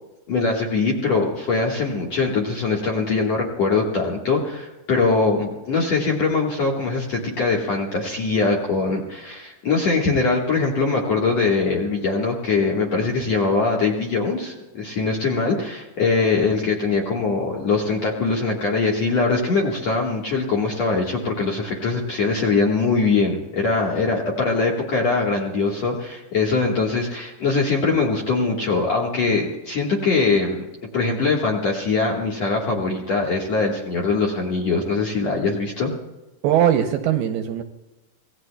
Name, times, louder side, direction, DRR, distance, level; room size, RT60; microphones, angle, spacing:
voice 1, 0.3-30.7 30.9-35.9, left 4 dB, 55° left, -2 dB, 1.9 m, -22 dB
voice 2, 36.4-37.6, right 10 dB, 80° right, 6 dB, 2.4 m, -20 dB
26.0 x 18.5 x 2.3 m, 1.0 s
omnidirectional pair, 5.1 m